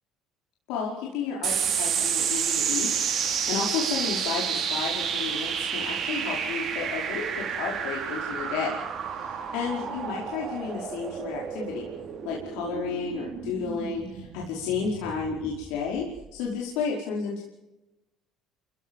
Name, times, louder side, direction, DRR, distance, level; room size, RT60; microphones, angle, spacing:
voice 1, 0.7-7.2 7.6-8.8 9.2-11.9 12.2-17.4, left 5 dB, 80° left, -2 dB, 5.0 m, -32 dB
sound 1, 1.4-16.2, right 7 dB, 55° right, 4.9 m, -30 dB
29.5 x 16.0 x 7.4 m, 1.0 s
supercardioid pair, 95°, 0 cm